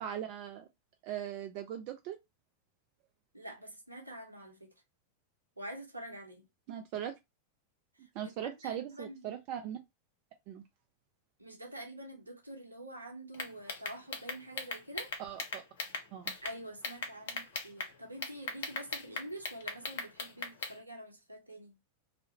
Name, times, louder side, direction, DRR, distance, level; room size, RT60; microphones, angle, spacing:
voice 1, 0.0-0.7 1.0-2.2 6.7-7.1 8.1-9.8 10.5-10.6 15.2-15.6 16.1-16.3, right 10 dB, 45° right, 0.4 m, -39 dB
voice 2, 3.3-4.7 5.6-6.4 8.2-9.3 11.4-15.1 16.4-21.8, right 1 dB, 85° right, 0.7 m, -46 dB
sound 1, 13.3-16.5 16.8-17.9 18.2-20.7, left 4 dB, 60° left, 0.6 m, -38 dB
2.4 x 2.1 x 2.7 m
figure-of-eight pair, 90°, 0 cm